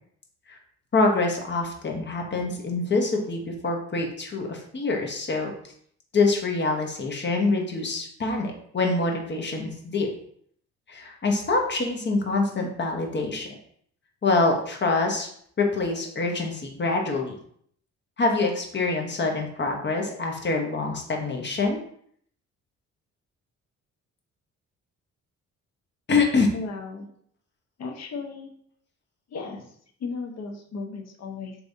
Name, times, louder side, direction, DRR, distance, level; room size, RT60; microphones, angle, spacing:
voice 1, 0.9-5.5 6.1-10.1 10.9-13.5 14.2-15.3 15.6-17.3 18.2-21.8 26.1-26.5, left 3 dB, 35° left, 2 dB, 1.1 m, -25 dB
voice 2, 26.5-27.1 27.8-28.5 29.3-29.6 30.0-31.6, left 4 dB, 60° left, 2 dB, 0.9 m, -35 dB
4.6 x 3.2 x 2.7 m, 0.64 s
cardioid pair, 90°, 30 cm